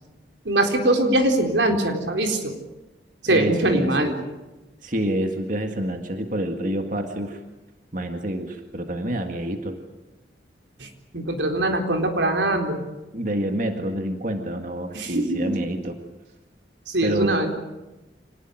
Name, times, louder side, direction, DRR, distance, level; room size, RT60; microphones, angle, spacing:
voice 1, 0.4-2.6 3.2-4.2 10.8-12.8 14.9-15.5 16.9-17.5, right 1 dB, 90° right, 4 dB, 4.0 m, -22 dB
voice 2, 3.3-4.1 4.8-7.4 7.9-9.8 13.1-16.0 17.0-17.5, right 1 dB, 45° right, 5 dB, 1.9 m, -27 dB
26.0 x 19.5 x 9.1 m, 1.1 s
head